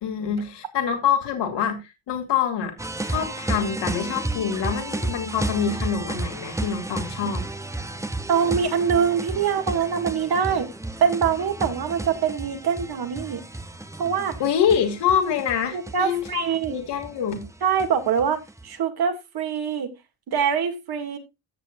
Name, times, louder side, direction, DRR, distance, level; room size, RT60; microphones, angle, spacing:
voice 1, 0.0-2.7 3.0-7.4 14.4-16.4 16.7-17.4, left 8 dB, 65° left, 2.6 m, -25 dB
sound 1, 2.8-18.6, right 2 dB, 5° right, 0.8 m, -32 dB
voice 2, 8.3-10.7 11.0-13.4 14.0-14.4 15.7-16.8 17.6-19.9 20.3-21.2, right 7 dB, 55° right, 2.3 m, -24 dB
15.5 x 6.6 x 2.5 m
supercardioid pair, 75°, 45 cm